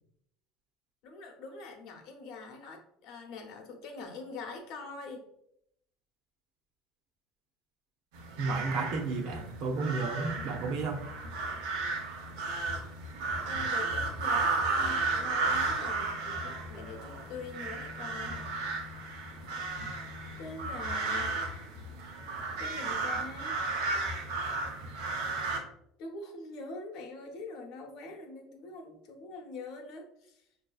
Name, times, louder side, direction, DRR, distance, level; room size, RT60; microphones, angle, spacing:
voice 1, 1.0-5.2 13.4-18.8 20.4-21.3 22.6-23.6 26.0-30.4, left 3 dB, 60° left, 2 dB, 0.8 m, -44 dB
sound 1, 8.1-25.6, right 3 dB, 85° right, 0.8 m, -34 dB
voice 2, 8.4-11.1, right 4 dB, 50° right, 4 dB, 0.6 m, -32 dB
5.3 x 2.7 x 2.3 m, 0.75 s
cardioid pair, 165°, 0 cm